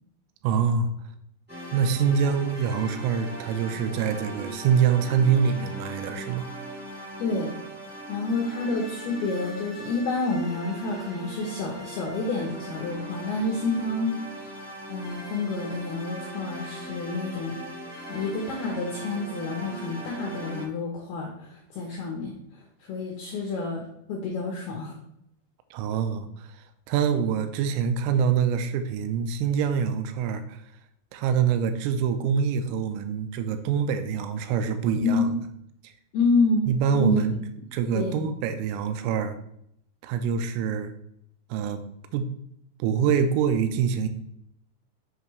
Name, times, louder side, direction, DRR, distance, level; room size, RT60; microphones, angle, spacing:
voice 1, 0.4-0.9 1.7-6.5 25.7-30.6 31.1-35.3 35.8-35.9 36.7-37.4 37.7-39.4 40.0-40.9 41.5-41.9 42.1-42.3 42.8-44.1, right 7 dB, 85° right, 9 dB, 3.3 m, -25 dB
sound 1, 1.5-20.6, right 1 dB, 5° right, 1.0 m, -39 dB
voice 2, 7.2-7.5 8.1-14.5 14.9-17.6 18.1-22.4 22.9-25.0 35.0-35.3 36.1-36.7 36.9-37.2 38.0-38.2, left 3 dB, 80° left, 0 dB, 2.3 m, -28 dB
8.2 x 6.9 x 3.2 m, 0.74 s
omnidirectional pair, 5.9 m